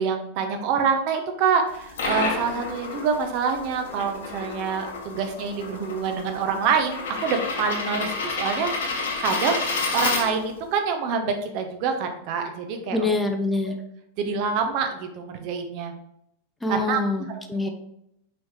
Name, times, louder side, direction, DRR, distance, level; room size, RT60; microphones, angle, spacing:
voice 1, 0.0-8.7 9.2-9.6 9.9-13.1 13.7-13.8 14.2-15.9 16.7-17.0 17.5-17.7, right 6 dB, 45° right, 5 dB, 0.9 m, -26 dB
sound 1, 1.7-10.7, left 3 dB, 65° left, 1.4 m, -30 dB
voice 2, 12.9-13.8 16.6-17.7, left 2 dB, 5° left, 4 dB, 0.7 m, -25 dB
6.1 x 4.8 x 3.2 m, 0.79 s
figure-of-eight pair, 90°, 0 cm